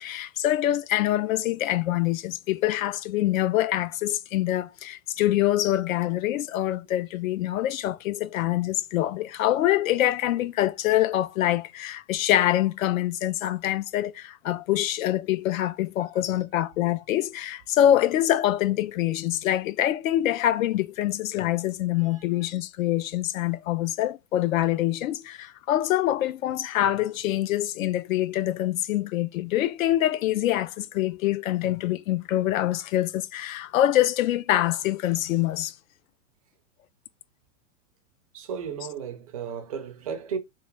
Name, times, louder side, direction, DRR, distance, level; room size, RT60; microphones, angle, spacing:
voice 1, 0.0-35.7, left 13 dB, 80° left, 0.5 m, -25 dB
voice 2, 38.3-40.4, right 7 dB, 30° right, 0.4 m, -35 dB
3.3 x 2.5 x 3.3 m
supercardioid pair, 165°, 40 cm